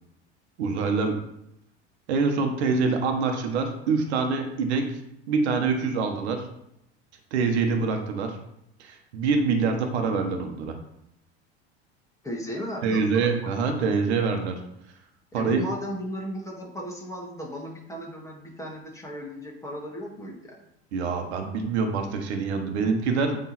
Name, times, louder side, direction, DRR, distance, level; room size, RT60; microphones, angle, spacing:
voice 1, 0.6-1.2 2.1-4.9 5.3-6.4 7.3-8.4 8.8-10.7 12.8-14.6 15.3-15.6 20.9-23.4, right 4 dB, 80° right, 4 dB, 1.3 m, -25 dB
voice 2, 12.2-13.6 15.3-20.6, equal, 10° left, -2 dB, 2.1 m, -36 dB
8.6 x 3.6 x 4.2 m, 0.78 s
hypercardioid pair, 85°, 33 cm